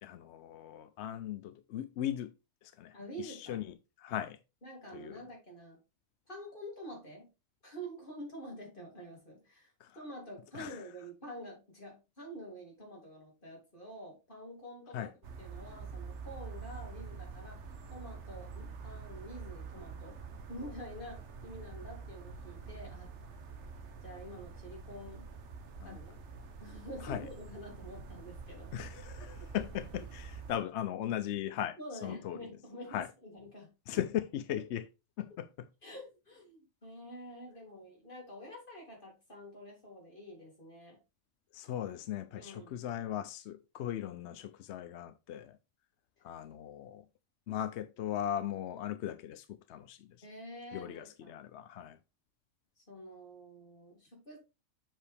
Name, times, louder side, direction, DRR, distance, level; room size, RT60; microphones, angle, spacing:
voice 1, 0.0-2.3 2.6-4.4 4.9-5.2 9.8-10.0 10.5-10.8 14.9-15.1 25.8-26.0 27.0-27.3 28.7-32.4 32.9-33.1 33.9-34.9 35.2-35.5 41.5-45.6 46.2-47.0 47.5-50.2 50.7-52.0, left 11 dB, 65° left, 0.8 m, -38 dB
voice 2, 2.9-3.6 4.6-5.8 6.3-7.3 7.6-15.1 15.4-17.6 17.9-20.2 20.5-23.1 24.0-25.3 25.8-26.2 26.6-28.7 29.4-29.5 31.8-33.7 35.8-41.0 42.3-42.8 50.2-51.4 52.9-54.4, equal, 40° left, 3.2 m, -48 dB
sound 1, 15.2-30.5, right 5 dB, 60° right, 1.2 m, -46 dB
7.4 x 4.9 x 3.4 m
omnidirectional pair, 1.4 m